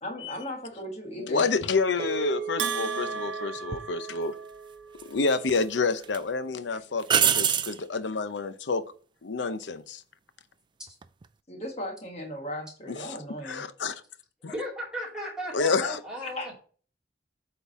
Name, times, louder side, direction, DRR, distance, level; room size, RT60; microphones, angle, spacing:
voice 1, 0.0-1.5 11.5-13.7 16.2-16.5, left 1 dB, 35° left, 1.6 m, -37 dB
voice 2, 1.2-4.3 5.0-8.8 9.2-10.0 12.9-13.2 13.4-13.9 14.4-14.5 15.5-16.0, left 4 dB, 80° left, 0.7 m, -28 dB
sound 1, 2.0-6.5, right 5 dB, 60° right, 1.0 m, -40 dB
Bell, 2.6-4.7, right 5 dB, 75° right, 0.6 m, -34 dB
sound 2, 3.7-3.9 5.0-5.6 6.0-6.2 7.1-7.8 10.9-11.2, right 8 dB, 25° right, 0.3 m, -24 dB
voice 3, 14.5-16.6, equal, 5° right, 3.0 m, -36 dB
8.1 x 3.9 x 4.1 m
head